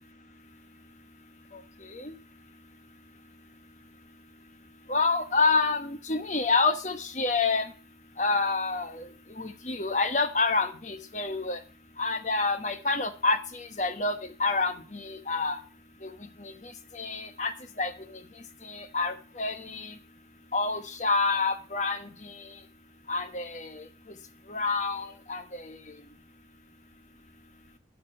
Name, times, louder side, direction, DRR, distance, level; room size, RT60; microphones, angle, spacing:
voice 1, 1.5-2.1 4.9-7.7 8.2-9.1 9.3-11.6 12.0-15.6 16.0-16.1 16.4-18.2 18.6-20.0 20.5-22.6 23.1-24.2 24.5-25.9, left 3 dB, 40° left, 8 dB, 1.1 m, -28 dB
9.0 x 5.9 x 7.6 m, 0.37 s
head